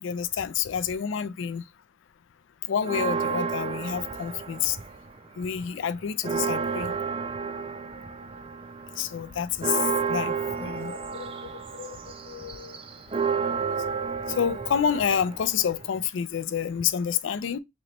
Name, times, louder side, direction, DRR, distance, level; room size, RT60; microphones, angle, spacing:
voice 1, 0.0-1.6 2.7-4.8 5.4-6.9 9.0-9.8 10.1-12.0 12.3-12.8 13.8-13.9 14.3-17.6, left 8 dB, 75° left, 0.4 m, -29 dB
sound 1, 2.8-5.2 5.6-16.0, right 5 dB, 30° right, 0.4 m, -31 dB
3.1 x 2.9 x 3.8 m
head